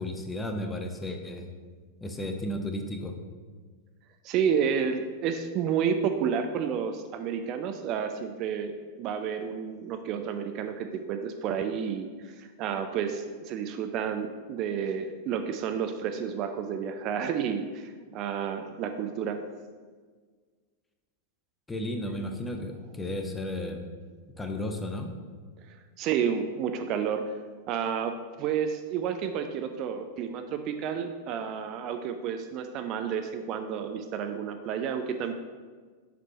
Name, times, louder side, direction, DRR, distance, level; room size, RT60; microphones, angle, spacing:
voice 1, 0.0-1.5 2.0-3.2 21.7-23.9 24.4-25.1, left 1 dB, 10° left, 5 dB, 0.7 m, -34 dB
voice 2, 4.2-19.4 26.0-27.3 27.7-35.3, right 7 dB, 40° right, 7 dB, 0.4 m, -30 dB
7.1 x 6.0 x 2.9 m, 1.5 s
figure-of-eight pair, 90°, 0 cm